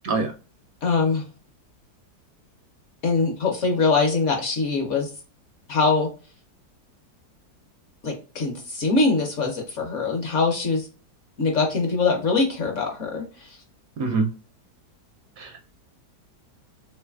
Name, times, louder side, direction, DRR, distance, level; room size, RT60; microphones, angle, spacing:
voice 1, 0.0-0.3 14.0-14.3 15.4-15.6, right 4 dB, 70° right, 5 dB, 0.9 m, -24 dB
voice 2, 0.8-1.2 3.0-5.1 5.7-6.1 8.0-10.9 11.4-13.6, left 4 dB, 55° left, 2 dB, 0.9 m, -23 dB
3.4 x 3.2 x 2.2 m, 0.35 s
omnidirectional pair, 1.8 m